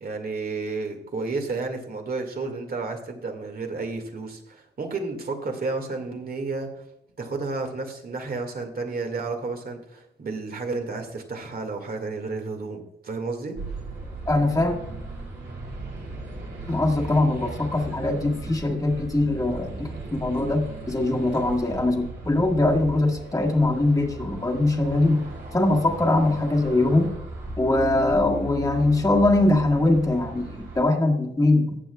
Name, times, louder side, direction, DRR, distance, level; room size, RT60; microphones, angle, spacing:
voice 1, 0.0-6.7 7.2-13.6, right 3 dB, 50° right, 4 dB, 2.0 m, -31 dB
sound 1, 13.5-30.8, right 2 dB, 80° right, 3.3 m, -37 dB
voice 2, 14.3-14.8 16.7-25.2 25.5-27.1 27.6-31.8, left 2 dB, 15° left, 0 dB, 1.7 m, -22 dB
14.5 x 8.2 x 2.3 m, 0.79 s
cardioid pair, 95°, 19 cm